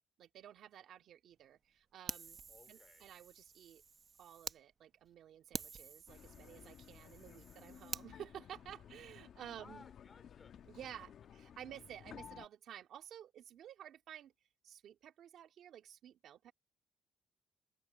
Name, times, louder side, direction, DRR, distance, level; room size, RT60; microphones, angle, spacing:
voice 1, 0.0-2.4 2.7-3.8 4.2-9.8 10.6-14.3 14.6-16.5, right 10 dB, 70° right, 2.4 m, -53 dB
Fire, 2.1-4.6 5.1-5.2 5.5-8.1, right 5 dB, 45° right, 0.9 m, -48 dB
voice 2, 2.5-3.1 9.6-10.5, left 4 dB, 35° left, 3.3 m, -60 dB
sound 1, 6.1-12.5, left 9 dB, 65° left, 1.5 m, -56 dB
cardioid pair, 90°, 0 cm